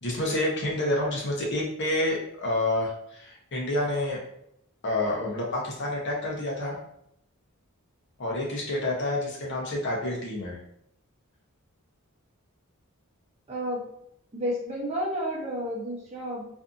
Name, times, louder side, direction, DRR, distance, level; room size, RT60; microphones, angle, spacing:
voice 1, 0.0-4.2 4.8-6.8 8.2-10.6, left 1 dB, 55° left, -2 dB, 0.7 m, -28 dB
voice 2, 13.5-13.9 14.3-16.5, equal, 30° right, -3 dB, 0.6 m, -31 dB
2.6 x 2.4 x 2.5 m, 0.73 s
head